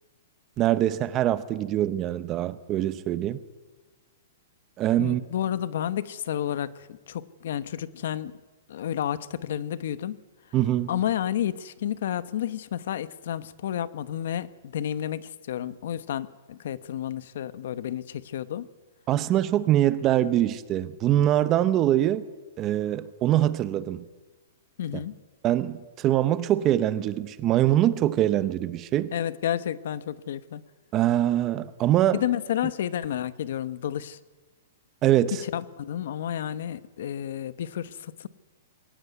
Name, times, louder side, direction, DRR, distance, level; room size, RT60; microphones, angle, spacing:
voice 1, 0.6-3.4 4.8-5.2 10.5-11.0 19.1-22.3 22.6-24.0 25.4-29.1 30.9-32.2 35.0-35.4, right 12 dB, 20° right, 0.7 m, -23 dB
voice 2, 5.0-8.3 8.7-10.2 10.9-18.7 24.8-25.1 29.1-30.6 32.1-34.2 35.5-38.3, left 10 dB, 55° left, 1.0 m, -31 dB
22.0 x 17.5 x 9.5 m
hypercardioid pair, 175°, 0 cm